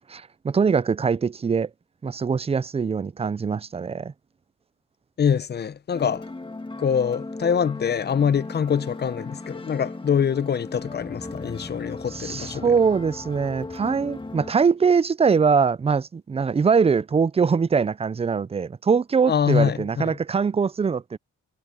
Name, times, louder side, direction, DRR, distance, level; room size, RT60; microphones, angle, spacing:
voice 1, 0.1-1.7 2.0-4.1 12.1-21.2, right 5 dB, 20° right, 0.5 m, -22 dB
voice 2, 5.2-6.3 6.8-12.7 19.3-20.2, left 7 dB, 35° left, 0.7 m, -24 dB
sound 1, 5.9-14.5, left 2 dB, 15° left, 2.0 m, -37 dB
cardioid pair, 90°, 30 cm